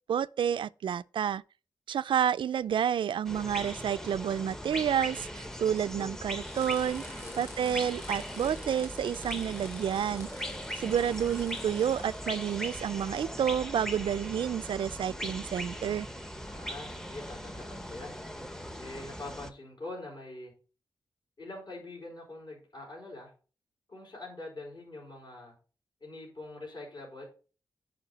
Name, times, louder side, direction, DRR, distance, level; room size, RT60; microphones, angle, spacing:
voice 1, 0.1-1.4 1.9-7.0 7.4-10.3 10.8-16.1, right 9 dB, 70° right, 0.3 m, -30 dB
sound 1, 3.2-19.5, equal, 5° left, 0.7 m, -39 dB
sound 2, 6.3-13.5, left 2 dB, 30° left, 3.6 m, -51 dB
voice 2, 16.5-18.2 18.8-20.5 21.4-23.3 23.9-25.5 26.0-27.2, left 2 dB, 55° left, 4.8 m, -44 dB
9.9 x 5.2 x 4.1 m
wide cardioid pair, 135°, 9 cm